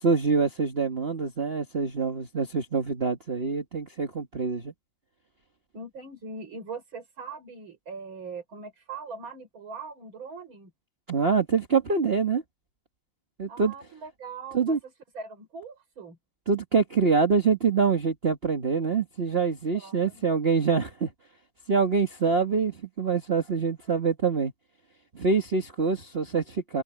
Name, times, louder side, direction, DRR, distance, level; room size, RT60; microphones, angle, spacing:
voice 1, 0.0-4.7 11.1-12.4 13.4-13.7 14.5-14.8 16.5-21.1 21.7-24.5 25.1-26.8, right 5 dB, 30° right, 1.6 m, -25 dB
voice 2, 5.7-10.7 13.5-16.2 19.7-20.0, right 4 dB, 80° right, 5.3 m, -41 dB
omnidirectional pair, 2.2 m